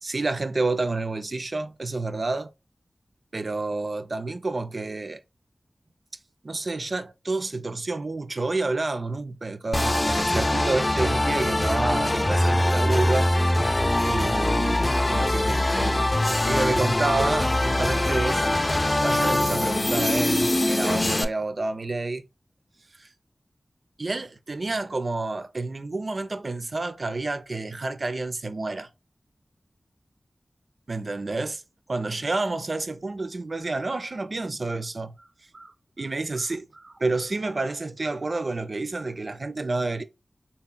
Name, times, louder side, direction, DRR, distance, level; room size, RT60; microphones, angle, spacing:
voice 1, 0.0-2.5 3.3-5.2 6.4-13.3 13.6-18.5 19.0-22.2 22.9-23.1 24.0-28.9 30.9-31.6 31.9-35.1 35.5-40.0, right 3 dB, 55° right, 0.4 m, -29 dB
sound 1, 9.7-21.2, left 1 dB, 30° left, 0.4 m, -23 dB
3.6 x 2.9 x 2.2 m
wide cardioid pair, 70°, 0 cm